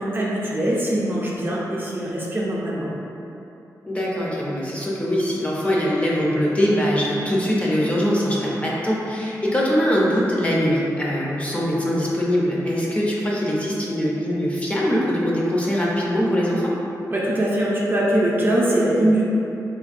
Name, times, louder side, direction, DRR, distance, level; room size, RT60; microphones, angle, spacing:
voice 1, 0.0-2.9 17.1-19.2, right 1 dB, 30° right, -5 dB, 0.5 m, -22 dB
voice 2, 3.9-16.7, equal, 20° left, -5 dB, 0.5 m, -22 dB
3.4 x 2.2 x 2.4 m, 2.9 s
wide cardioid pair, 80°, 7 cm